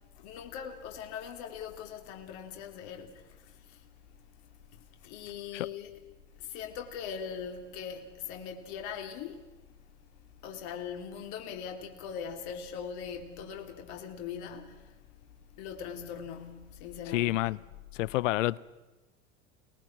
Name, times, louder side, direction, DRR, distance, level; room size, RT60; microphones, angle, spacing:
voice 1, 0.2-3.8 4.7-5.9 6.4-9.4 10.4-15.0 15.6-17.6, left 7 dB, 60° left, 3.1 m, -41 dB
voice 2, 17.1-17.6 17.9-18.6, left 17 dB, 75° left, 0.7 m, -28 dB
29.5 x 20.0 x 6.0 m
hypercardioid pair, 95°, 38 cm